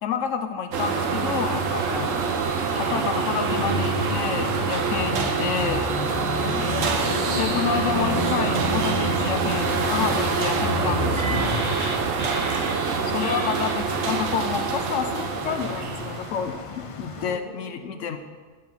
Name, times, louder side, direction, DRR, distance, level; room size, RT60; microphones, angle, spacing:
voice 1, 0.0-2.2 2.8-5.9 7.4-11.5 13.0-18.2, left 7 dB, 80° left, 8 dB, 1.0 m, -29 dB
sound 1, 0.7-16.6, right 5 dB, 90° right, 1.3 m, -26 dB
sound 2, 1.8-13.7, right 2 dB, 25° right, 0.9 m, -36 dB
sound 3, 3.4-17.4, left 5 dB, 45° left, 0.4 m, -33 dB
voice 2, 6.7-7.2 12.5-13.6 17.1-18.1, right 2 dB, 45° right, -5 dB, 2.4 m, -43 dB
13.5 x 4.7 x 5.5 m, 1.4 s
omnidirectional pair, 1.3 m